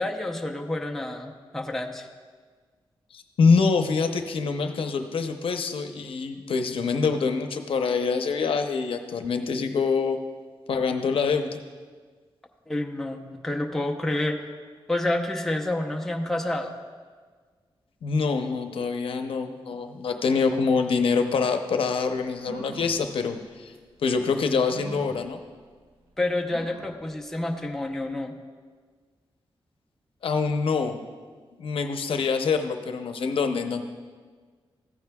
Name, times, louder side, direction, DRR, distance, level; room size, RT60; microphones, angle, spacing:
voice 1, 0.0-2.1 12.7-14.5 14.9-16.7 26.2-28.3, left 1 dB, 5° left, 0 dB, 0.7 m, -29 dB
voice 2, 3.1-10.2 10.7-11.6 18.0-23.7 24.0-25.4 30.2-31.0 31.6-33.8, left 5 dB, 80° left, 6 dB, 0.7 m, -25 dB
sound 1, 22.4-23.0 23.7-23.8 24.7-25.2 26.5-27.0 27.5-27.6 27.9-28.0, right 2 dB, 75° right, 1.6 m, -40 dB
14.5 x 9.3 x 2.3 m, 1.5 s
wide cardioid pair, 140°, 9 cm